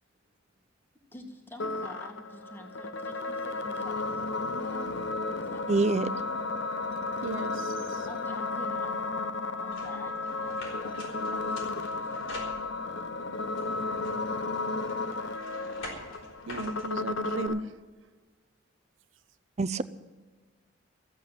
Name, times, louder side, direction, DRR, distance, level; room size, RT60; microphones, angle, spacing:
voice 1, 1.1-4.9 5.4-6.3 8.1-9.0 9.5-12.5, equal, 10° left, 3 dB, 1.8 m, -48 dB
sound 1, 1.6-17.6, left 3 dB, 65° left, 0.8 m, -33 dB
voice 2, 5.7-6.1 19.6-19.8, right 3 dB, 35° right, 15 dB, 0.6 m, -25 dB
voice 3, 7.2-8.1 16.5-17.8, right 2 dB, 75° right, 13 dB, 0.8 m, -35 dB
sound 2, 9.7-13.1 13.6-17.5, left 1 dB, 85° left, 4.8 m, -46 dB
15.0 x 8.2 x 9.2 m, 1.4 s
head